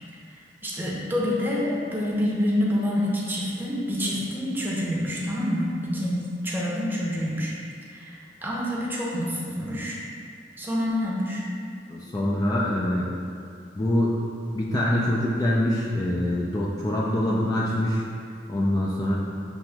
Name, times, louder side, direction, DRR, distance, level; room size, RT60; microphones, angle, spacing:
voice 1, 0.3-7.5 7.9-10.0 10.6-11.4, equal, 10° right, -5 dB, 0.7 m, -27 dB
voice 2, 11.9-13.1 13.7-14.2 14.5-18.1 18.5-19.1, left 1 dB, 20° left, -5 dB, 0.4 m, -24 dB
7.0 x 3.0 x 2.2 m, 2.4 s
head